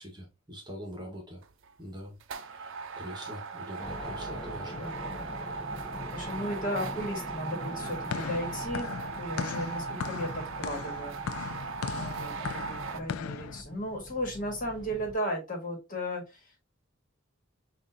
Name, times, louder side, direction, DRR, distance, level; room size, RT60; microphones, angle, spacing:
voice 1, 0.0-1.4 1.8-4.8, equal, 20° right, 1.3 m, -44 dB
sound 1, 1.4-1.7 2.2-13.0, right 5 dB, 60° right, 0.5 m, -39 dB
sound 2, 3.8-15.1, left 1 dB, 25° left, 0.7 m, -43 dB
voice 2, 4.8-5.6 6.1-11.2 11.4-11.7 11.9-16.6, equal, 40° left, 1.6 m, -36 dB
sound 3, 7.8-13.6, left 7 dB, 75° left, 0.3 m, -38 dB
6.3 x 2.6 x 2.7 m
head